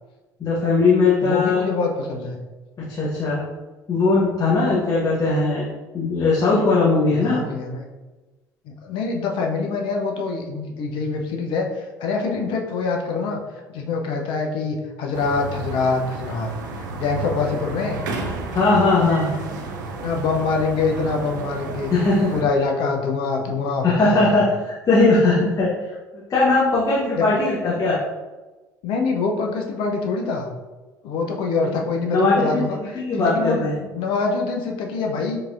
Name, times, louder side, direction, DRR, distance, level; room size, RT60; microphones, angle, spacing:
voice 1, 0.4-1.6 2.8-3.4 3.9-5.7 5.9-7.4 18.5-19.4 21.9-22.4 23.8-25.7 26.3-28.0 31.6-31.8 32.1-33.8, left 3 dB, 35° left, -8 dB, 1.0 m, -19 dB
voice 2, 1.2-2.4 7.1-7.8 8.7-13.4 13.7-16.5 16.9-18.0 19.8-21.9 22.3-24.4 27.2-27.7 28.8-30.5 31.0-35.4, left 4 dB, 60° left, 2 dB, 0.6 m, -25 dB
sound 1, 15.1-22.4, right 3 dB, 80° right, 0.5 m, -32 dB
4.6 x 2.7 x 2.5 m, 1.2 s
figure-of-eight pair, 55°, 10 cm